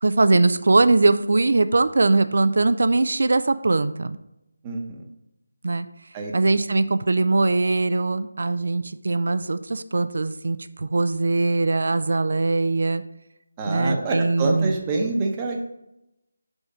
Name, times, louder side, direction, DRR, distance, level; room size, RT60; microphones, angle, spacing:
voice 1, 0.0-4.2 5.6-5.9 6.3-13.0 13.7-14.7, right 3 dB, 60° right, 12 dB, 0.4 m, -21 dB
voice 2, 4.6-5.0 6.1-6.3 13.6-15.6, right 3 dB, 15° right, 1 dB, 0.8 m, -26 dB
5.7 x 5.3 x 5.0 m, 0.87 s
figure-of-eight pair, 170°, 0 cm